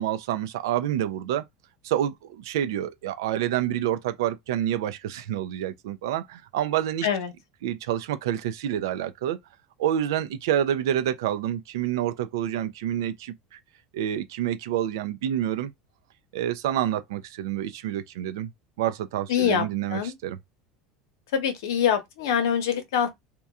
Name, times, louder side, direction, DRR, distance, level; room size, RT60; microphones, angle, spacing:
voice 1, 0.0-1.4 1.8-7.1 7.6-9.4 9.8-13.6 13.9-15.7 16.3-18.5 18.8-20.4, right 11 dB, 85° right, 0.4 m, -28 dB
voice 2, 7.0-7.3 19.3-20.1 21.3-23.1, left 8 dB, 85° left, 0.8 m, -25 dB
2.9 x 2.2 x 2.3 m
supercardioid pair, 105°, 2 cm